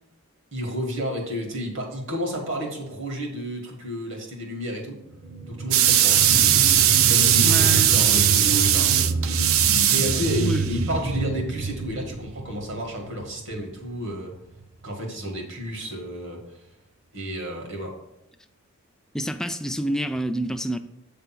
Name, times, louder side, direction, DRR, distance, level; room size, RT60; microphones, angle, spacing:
voice 1, 0.5-5.0 5.5-9.6 9.9-14.3 14.8-16.4 17.1-17.9, equal, 65° right, 1.8 m, -31 dB
sound 1, 5.1-14.2 14.6-14.7, right 3 dB, 35° right, 0.7 m, -28 dB
sound 2, 5.7-10.7, right 11 dB, 90° right, 0.4 m, -19 dB
voice 2, 7.4-8.0 10.4-10.9 19.1-20.8, right 1 dB, 5° left, 0.3 m, -28 dB
8.1 x 3.4 x 5.9 m
head